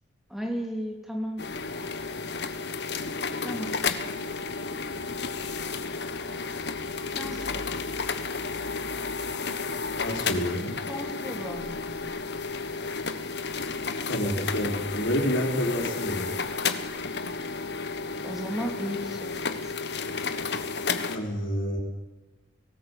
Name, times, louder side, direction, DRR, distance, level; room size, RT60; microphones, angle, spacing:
voice 1, 0.3-1.5 3.4-3.8 7.1-7.7 10.9-12.3 18.2-19.7, equal, ahead, 2 dB, 2.9 m, -35 dB
sound 1, 1.4-21.2, left 4 dB, 60° left, 1.3 m, -32 dB
voice 2, 10.0-10.7 14.1-16.4 21.1-21.8, equal, 90° left, 1 dB, 4.7 m, -28 dB
18.0 x 18.0 x 8.4 m, 1.2 s
head